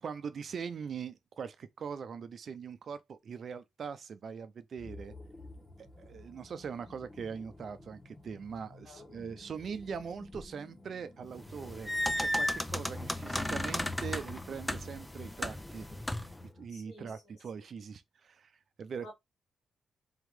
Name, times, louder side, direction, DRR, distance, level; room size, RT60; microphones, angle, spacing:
voice 1, 0.0-5.1 5.8-15.9 16.6-18.5 18.8-19.1, right 6 dB, 60° right, 0.6 m, -42 dB
sound 1, 4.8-16.7, left 2 dB, 30° left, 1.1 m, -49 dB
sound 2, 11.4-16.4, left 1 dB, 10° left, 0.4 m, -35 dB
voice 2, 16.7-17.4 19.0-19.1, left 1 dB, 60° left, 2.4 m, -52 dB
3.7 x 3.1 x 3.6 m
cardioid pair, 85°, 0 cm